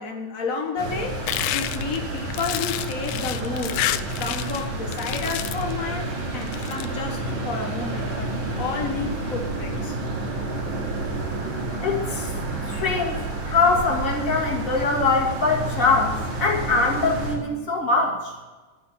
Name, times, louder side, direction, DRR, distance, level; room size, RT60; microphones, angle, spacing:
voice 1, 0.0-3.8 4.2-10.0, left 4 dB, 65° left, 2 dB, 0.8 m, -31 dB
sound 1, 0.8-17.4, right 2 dB, 70° right, 4.0 m, -30 dB
sound 2, 1.3-4.7 4.9-5.7 6.4-6.9, left 14 dB, 90° left, 2.0 m, -29 dB
voice 2, 11.8-12.3 12.6-18.3, left 3 dB, 30° left, -1 dB, 2.3 m, -23 dB
13.0 x 8.5 x 6.9 m, 1.3 s
omnidirectional pair, 3.4 m